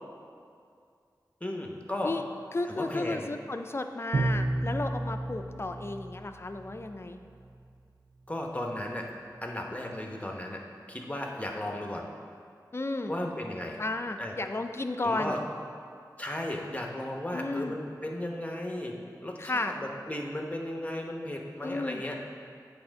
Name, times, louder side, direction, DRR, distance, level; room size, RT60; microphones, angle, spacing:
voice 1, 1.4-2.2 2.7-3.3 8.3-9.1 9.4-10.6 10.9-12.1 13.1-13.8 14.2-14.3 15.0-15.4 16.2-22.2, left 1 dB, 20° left, 1 dB, 0.9 m, -35 dB
voice 2, 2.5-7.2 12.7-13.1 13.8-15.4 17.3-17.7 19.4-19.7 21.6-22.0, left 2 dB, 35° left, 6 dB, 0.4 m, -33 dB
Bowed string instrument, 4.1-6.9, right 2 dB, 70° right, 0.5 m, -31 dB
8.7 x 3.5 x 5.1 m, 2.3 s
wide cardioid pair, 45°, 7 cm